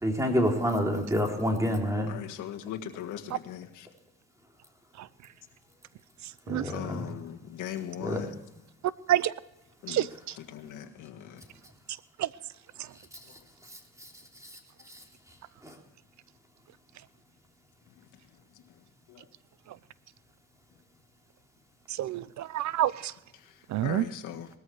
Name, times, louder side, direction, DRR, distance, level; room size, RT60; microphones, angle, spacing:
voice 1, 0.0-2.1 6.5-7.1 8.0-8.2 15.6-15.7, equal, 10° right, 2 dB, 3.5 m, -27 dB
voice 2, 2.1-3.9 6.7-8.3 9.8-10.0 10.5-11.4 13.3-13.4 19.1-19.3 23.4-24.5, left 10 dB, 85° left, 4 dB, 1.6 m, -39 dB
voice 3, 9.9-10.4 12.2-12.3 12.8-12.9 19.7-19.8 21.9-23.1 23.7-24.1, right 13 dB, 65° right, 19 dB, 0.7 m, -28 dB
19.5 x 13.5 x 4.8 m, 0.91 s
cardioid pair, 90°, 30 cm